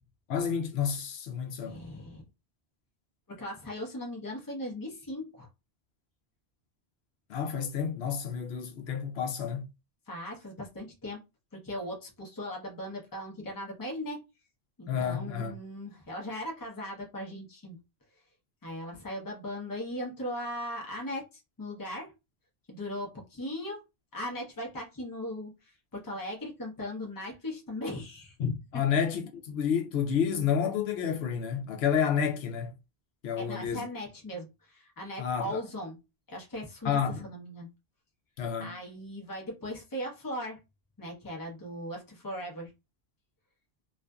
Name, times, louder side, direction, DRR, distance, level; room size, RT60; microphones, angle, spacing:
voice 1, 0.3-1.8 7.3-9.7 14.9-15.6 28.4-32.7 33.2-33.9 35.2-35.6 36.8-37.2 38.4-38.8, left 7 dB, 85° left, 0.8 m, -30 dB
voice 2, 1.6-2.3 3.3-5.5 10.1-11.2 11.5-14.2 14.8-17.8 18.6-22.1 22.7-23.8 24.1-28.4 28.7-28.8 33.4-36.0 36.3-37.7 38.6-40.6 41.0-42.7, left 1 dB, 25° left, 0.7 m, -38 dB
2.5 x 2.4 x 2.2 m
omnidirectional pair, 1.0 m